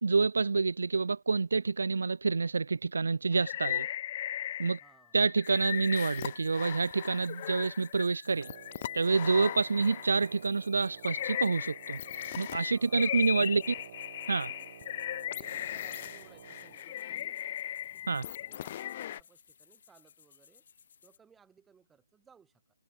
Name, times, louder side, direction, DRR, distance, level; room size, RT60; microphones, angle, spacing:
voice 1, 0.0-3.9 4.6-4.8 5.1-8.5 8.9-12.0 12.4-13.6 14.3-14.5 18.1-18.2, right 4 dB, 75° right, 0.4 m, -28 dB
sound 1, 3.3-4.9 5.2-10.3 10.8-19.2, left 12 dB, 35° left, 0.6 m, -37 dB
voice 2, 4.8-5.2 12.7-13.8 14.5-14.7 15.3-17.4 17.9-20.6 21.0-22.6, right 6 dB, 5° right, 4.9 m, -63 dB
sound 2, 5.4-21.2, left 7 dB, 50° left, 3.3 m, -61 dB
Wind instrument woodwind instrument, 8.3-16.9, right 9 dB, 40° right, 4.2 m, -52 dB
hypercardioid pair, 160°, 0 cm